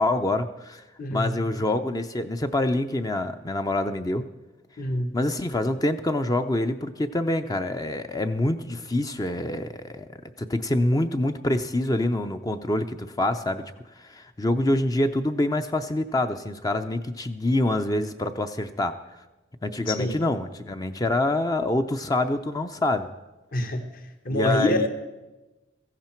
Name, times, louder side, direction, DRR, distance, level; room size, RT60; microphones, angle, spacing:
voice 1, 0.0-0.8 1.1-4.2 5.1-10.1 10.4-13.6 14.0-18.9 19.6-23.1 24.3-24.9, left 1 dB, 20° left, 8 dB, 0.5 m, -26 dB
voice 2, 1.0-1.4 4.8-5.1 19.9-20.1 23.5-23.8 24.2-24.9, left 1 dB, 50° left, 7 dB, 1.1 m, -25 dB
16.5 x 14.5 x 4.5 m, 1.1 s
head